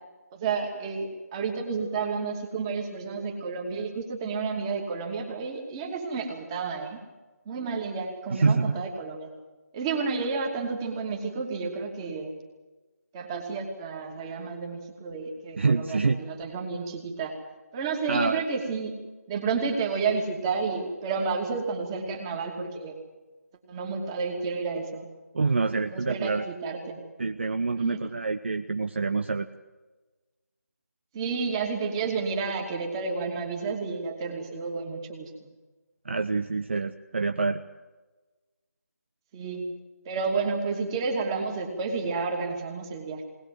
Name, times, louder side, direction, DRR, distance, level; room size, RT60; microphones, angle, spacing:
voice 1, 0.3-7.0 7.5-9.3 9.7-12.4 13.1-17.4 17.7-19.0 19.3-23.0 23.7-25.1 25.9-27.0 27.8-28.0 31.1-35.5 39.3-39.7 40.0-43.2, right 4 dB, 15° right, 2 dB, 2.7 m, -31 dB
voice 2, 8.3-8.8 15.6-16.2 18.1-18.4 25.3-26.4 27.2-29.5 36.0-37.6, right 4 dB, 45° right, 7 dB, 1.0 m, -26 dB
20.5 x 20.0 x 7.7 m, 1.2 s
figure-of-eight pair, 160°, 9 cm